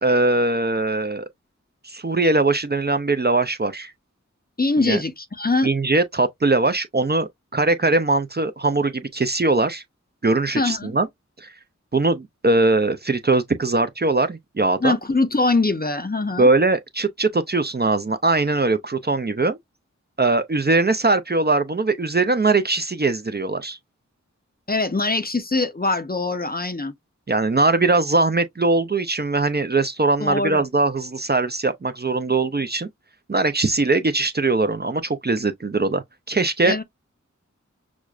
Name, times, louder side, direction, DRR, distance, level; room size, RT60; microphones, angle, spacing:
voice 1, 0.0-1.3 1.8-3.9 4.9-5.0 5.6-9.8 10.2-11.1 11.4-11.5 11.9-15.0 16.4-19.6 20.2-23.8 27.3-32.9 33.3-36.8, right 3 dB, 35° right, 0.5 m, -21 dB
voice 2, 4.6-5.7 10.5-10.9 14.8-16.5 24.7-26.9 30.2-30.6 36.6-36.8, left 3 dB, 30° left, 0.6 m, -22 dB
6.1 x 2.0 x 2.4 m
wide cardioid pair, 45°, 30 cm